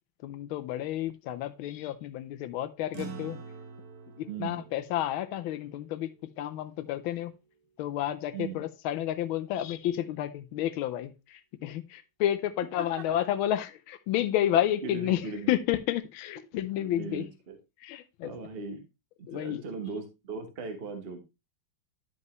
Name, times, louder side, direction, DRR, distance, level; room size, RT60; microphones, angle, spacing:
voice 1, 0.2-3.4 4.2-6.1 6.4-7.3 7.8-15.2 15.5-17.3 17.8-18.3 19.3-19.6, left 12 dB, 90° left, 10 dB, 1.4 m, -31 dB
sound 1, 2.9-7.6, right 5 dB, 50° right, 1.4 m, -47 dB
voice 2, 4.3-4.7 8.3-8.7 12.8-13.1 14.8-15.6 16.8-17.6 18.2-18.8 19.2-21.2, right 4 dB, 35° right, 5 dB, 1.2 m, -38 dB
10.5 x 5.4 x 3.0 m, 0.26 s
omnidirectional pair, 2.2 m